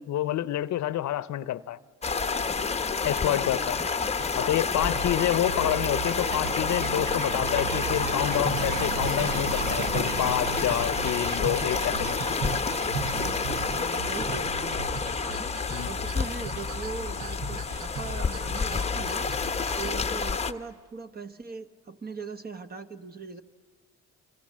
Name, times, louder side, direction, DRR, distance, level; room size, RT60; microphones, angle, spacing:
voice 1, 0.0-1.8 3.0-3.8 4.4-12.2 15.7-15.9, left 13 dB, 70° left, 0.7 m, -28 dB
sound 1, 2.0-20.5, left 5 dB, 20° left, 0.9 m, -29 dB
voice 2, 3.2-3.9 5.0-5.3 13.7-15.2 15.8-19.3 19.8-23.4, right 4 dB, 30° right, 1.3 m, -40 dB
sound 2, 4.0-19.9, right 6 dB, 85° right, 1.1 m, -39 dB
sound 3, 4.7-15.1, right 8 dB, 65° right, 0.7 m, -37 dB
27.0 x 26.0 x 7.5 m
cardioid pair, 90°, 30 cm